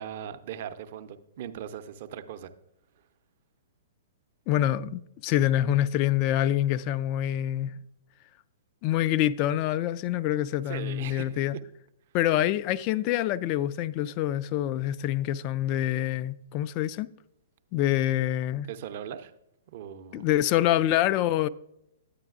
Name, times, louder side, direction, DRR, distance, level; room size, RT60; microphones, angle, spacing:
voice 1, 0.0-2.5 10.7-11.4 18.7-19.3 19.7-20.3, right 9 dB, 50° right, 0.6 m, -39 dB
voice 2, 4.5-7.7 8.8-11.5 12.1-17.1 17.7-18.7 20.1-21.5, left 12 dB, 40° left, 0.3 m, -26 dB
9.9 x 9.0 x 2.4 m
figure-of-eight pair, 110°, 0 cm